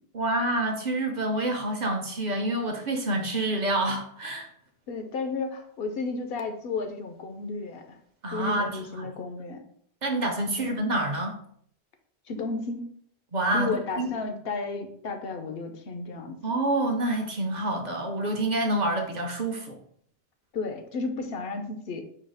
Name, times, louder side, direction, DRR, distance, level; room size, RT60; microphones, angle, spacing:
voice 1, 0.1-4.5 8.2-9.1 10.0-11.4 13.3-14.1 16.4-19.8, right 1 dB, 50° right, 3 dB, 0.7 m, -27 dB
voice 2, 4.9-8.0 8.3-9.6 10.6-10.7 12.3-13.0 13.5-16.4 20.5-22.0, left 3 dB, 70° left, 6 dB, 0.8 m, -33 dB
4.6 x 2.3 x 4.8 m, 0.64 s
omnidirectional pair, 1.0 m